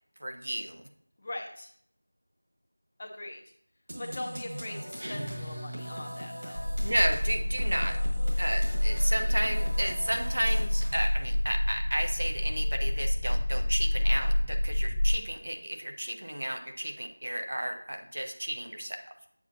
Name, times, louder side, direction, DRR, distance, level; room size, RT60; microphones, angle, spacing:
voice 1, 0.2-0.8 6.8-8.0 8.4-19.0, right 1 dB, 55° right, 4 dB, 0.9 m, -32 dB
voice 2, 1.2-1.7 3.0-3.4 4.0-6.7, left 1 dB, 20° left, 1 dB, 0.7 m, -41 dB
sound 1, 3.9-11.3, equal, 40° right, 1.5 m, -42 dB
sound 2, 5.0-6.7, equal, 80° right, 2.2 m, -40 dB
sound 3, 6.6-15.2, left 1 dB, 10° right, 0.9 m, -28 dB
7.1 x 7.1 x 2.8 m, 0.66 s
figure-of-eight pair, 175°, 0 cm